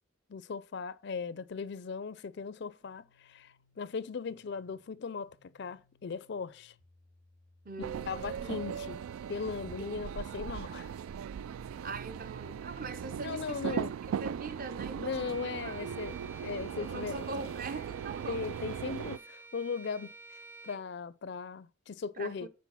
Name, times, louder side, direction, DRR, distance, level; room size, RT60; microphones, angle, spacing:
voice 1, 0.3-6.7 8.1-9.0 9.3-10.9 13.2-13.9 15.0-17.2 18.3-20.1 20.6-22.5, left 5 dB, 55° left, 0.4 m, -38 dB
sound 1, 2.8-18.8, left 2 dB, 60° right, 5.6 m, -65 dB
voice 2, 7.6-8.6 9.8-10.1 11.5-13.8 14.2-15.8 16.8-18.5 22.2-22.5, right 3 dB, 45° right, 0.7 m, -43 dB
sound 2, 7.8-19.2, right 8 dB, 90° right, 0.3 m, -39 dB
Bowed string instrument, 15.2-20.9, right 4 dB, 10° right, 0.6 m, -52 dB
8.3 x 4.6 x 5.6 m
head